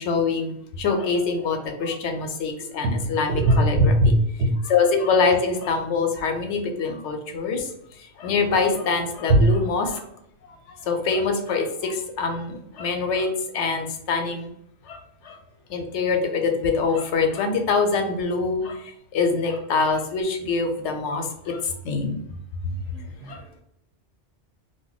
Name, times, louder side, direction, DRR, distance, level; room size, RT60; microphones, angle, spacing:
voice 1, 0.0-4.1 4.6-7.6 8.2-10.0 10.9-14.5 14.9-15.0 15.3-15.4 15.7-18.8 19.1-21.6 21.8-22.2 23.3-23.4, left 4 dB, 85° left, 5 dB, 0.9 m, -24 dB
voice 2, 3.3-4.5 9.3-9.5 23.2-23.4, right 1 dB, 80° right, 3 dB, 0.9 m, -18 dB
2.5 x 2.1 x 3.9 m, 0.75 s
omnidirectional pair, 1.2 m